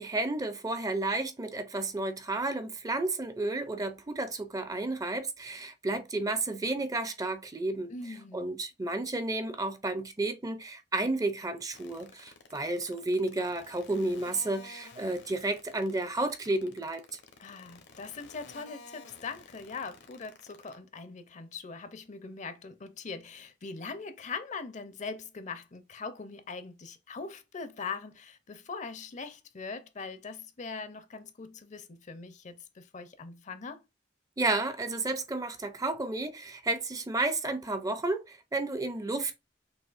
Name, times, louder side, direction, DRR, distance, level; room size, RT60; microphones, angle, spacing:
voice 1, 0.0-7.9 8.3-17.0 34.4-39.3, right 2 dB, 20° right, 0.5 m, -32 dB
voice 2, 7.9-8.6 17.4-33.8, left 4 dB, 40° left, 0.6 m, -41 dB
Atari Punk Console, 11.7-20.7, left 4 dB, 80° left, 1.1 m, -51 dB
6.2 x 2.7 x 2.5 m
head